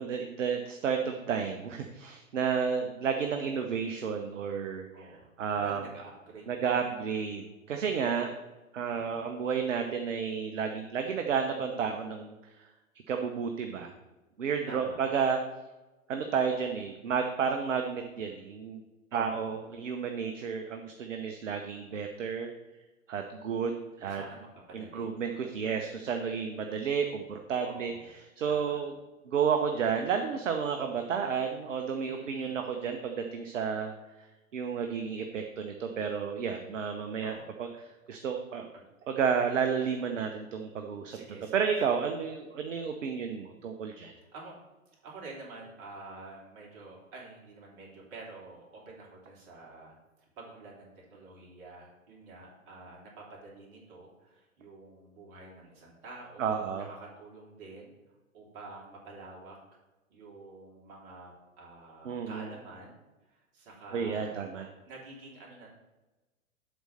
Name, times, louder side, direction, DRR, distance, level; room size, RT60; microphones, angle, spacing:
voice 1, 0.0-4.9 5.4-5.8 6.5-8.3 8.7-12.3 13.1-13.9 14.4-15.4 16.1-18.8 19.1-22.5 23.1-24.2 24.7-27.9 28.4-28.9 29.3-33.9 34.2-34.3 34.5-37.7 38.1-38.7 39.1-41.2 41.5-44.1 56.4-56.9 62.0-62.5 63.9-64.7, right 6 dB, 60° right, 5 dB, 0.9 m, -31 dB
voice 2, 4.9-6.7 8.9-9.3 14.7-15.0 19.1-19.5 24.0-25.1 27.6-28.1 28.4-28.8 32.0-32.6 37.2-37.5 38.7-38.8 41.1-41.7 44.2-44.6 45.0-49.9 50.4-57.9 58.3-59.6 60.1-63.0 63.3-64.4 64.8-65.8, right 3 dB, 40° right, -3 dB, 3.1 m, -48 dB
7.9 x 4.2 x 6.5 m, 1.1 s
figure-of-eight pair, 105°, 42 cm